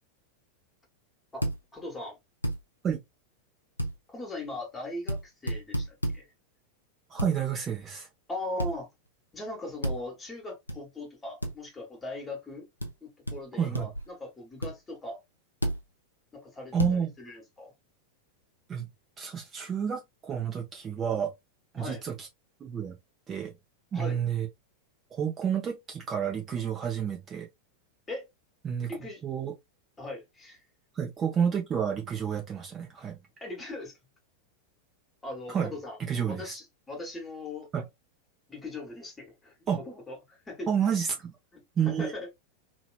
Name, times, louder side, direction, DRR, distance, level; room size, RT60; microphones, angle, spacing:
voice 1, 1.3-2.2 4.1-6.3 8.3-8.9 9.3-12.7 13.0-15.2 16.3-17.7 21.7-22.0 23.9-24.2 28.1-28.3 28.9-29.2 30.0-30.6 33.4-33.9 35.2-36.0 36.3-37.7 38.5-40.7 41.5-42.3, left 2 dB, 15° left, 1.4 m, -39 dB
sound 1, 1.4-1.6 2.4-2.6 3.8-3.9 5.1-5.2 5.5-6.2 7.2-7.3 8.6-8.8 9.8-10.0 10.7-10.8 11.4-11.5 12.8-12.9 13.3-13.4 13.7-14.1 14.6-14.7 15.6-15.8 16.8-17.0, equal, 85° left, 0.5 m, -30 dB
voice 2, 7.1-8.1 13.6-13.9 16.7-17.1 18.7-18.9 19.2-21.3 21.7-22.3 22.6-23.0 23.3-23.5 23.9-24.5 25.1-27.5 28.6-28.9 29.2-29.5 30.9-33.2 35.5-35.7 36.0-36.5 37.7-37.8 39.7-39.8 40.7-41.3 41.8-42.1, right 7 dB, 25° right, 0.8 m, -30 dB
2.9 x 2.9 x 2.3 m
figure-of-eight pair, 90°, 0 cm